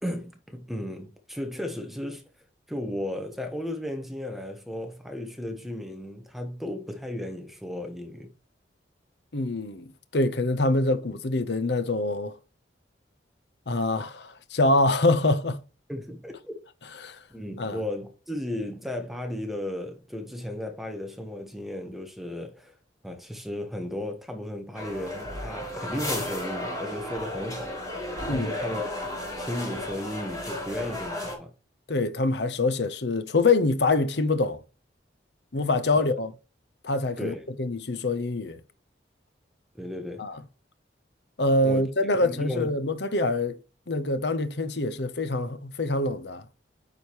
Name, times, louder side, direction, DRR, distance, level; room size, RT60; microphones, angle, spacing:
voice 1, 0.0-2.2 2.7-8.3 15.9-16.6 17.3-22.8 23.0-28.9 29.4-31.5 35.9-36.0 37.2-37.5 39.7-40.3 41.6-41.9 42.2-42.7, left 1 dB, ahead, 1.3 m, -35 dB
voice 2, 9.3-12.4 13.7-15.6 17.0-17.2 17.6-17.8 28.3-28.5 31.9-34.6 35.5-36.3 36.8-38.6 40.2-40.4 41.4-43.6 43.9-46.5, left 2 dB, 70° left, 0.9 m, -25 dB
sound 1, 24.7-31.4, left 1 dB, 20° left, 3.6 m, -34 dB
9.2 x 5.1 x 3.1 m
head